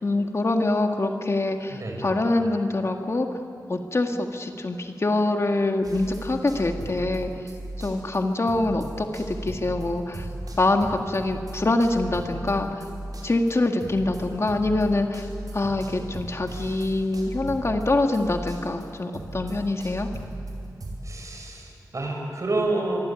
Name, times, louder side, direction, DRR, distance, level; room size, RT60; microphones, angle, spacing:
voice 1, 0.0-3.3 3.7-7.3 7.8-10.3 10.6-12.8 13.2-15.3 15.5-20.1, left 2 dB, 40° left, 4 dB, 2.0 m, -25 dB
voice 2, 1.7-2.0 21.0-23.0, right 2 dB, 50° right, 1 dB, 6.8 m, -29 dB
sound 1, 5.8-8.2 8.5-21.0, right 2 dB, 70° right, 5.5 m, -37 dB
24.5 x 24.0 x 9.2 m, 2.7 s
wide cardioid pair, 90°, 7 cm